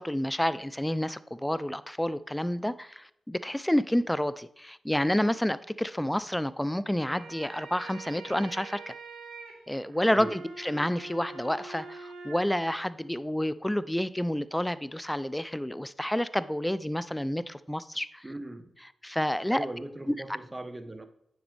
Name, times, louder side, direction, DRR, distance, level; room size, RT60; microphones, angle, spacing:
voice 1, 0.0-8.9 9.7-18.2 19.0-19.7, left 1 dB, 10° left, 0.5 m, -29 dB
sound 1, 6.9-12.4, right 4 dB, 85° right, 1.2 m, -45 dB
voice 2, 18.2-18.7 19.5-21.1, right 1 dB, 25° right, 1.1 m, -39 dB
9.3 x 7.1 x 3.4 m
supercardioid pair, 40°, 0 cm